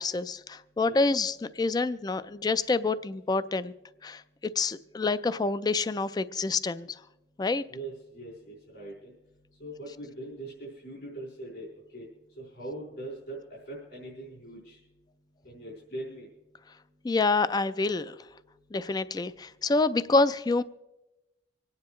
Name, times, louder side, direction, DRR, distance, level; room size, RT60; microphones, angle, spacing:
voice 1, 0.0-3.7 4.0-4.2 4.6-6.9 7.4-7.6 17.0-18.2 18.7-20.6, left 3 dB, 25° left, 15 dB, 0.3 m, -27 dB
voice 2, 7.7-9.1 9.6-12.0 12.4-13.4 13.7-14.8 15.4-16.3, right 1 dB, 70° left, -5 dB, 4.9 m, -41 dB
26.0 x 9.6 x 3.1 m, 0.97 s
head